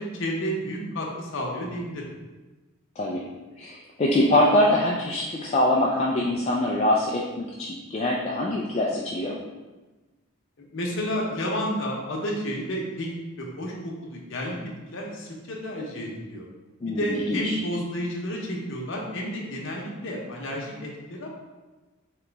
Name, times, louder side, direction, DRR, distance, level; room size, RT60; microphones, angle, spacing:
voice 1, 0.0-2.1 10.7-13.1 13.4-13.7 14.1-16.4 16.9-20.9 21.2-21.3, equal, 60° left, -2 dB, 0.8 m, -31 dB
voice 2, 3.6-9.3 16.8-17.6, left 1 dB, 30° left, -3 dB, 0.3 m, -24 dB
3.9 x 2.9 x 3.4 m, 1.2 s
head